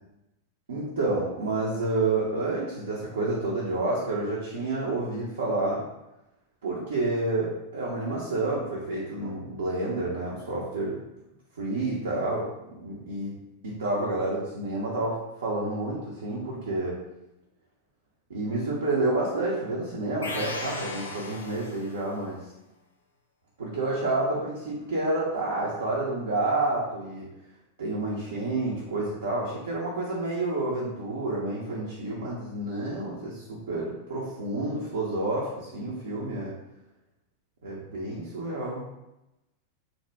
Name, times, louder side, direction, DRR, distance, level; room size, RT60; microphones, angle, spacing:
voice 1, 0.7-5.8 6.6-11.0 11.6-17.0 18.3-22.4 23.6-27.3 27.8-36.6 37.6-38.9, right 2 dB, 65° right, -5 dB, 0.5 m, -29 dB
sound 1, 20.2-22.1, left 2 dB, 70° left, 0.5 m, -36 dB
2.6 x 2.1 x 3.2 m, 0.93 s
figure-of-eight pair, 90°, 0 cm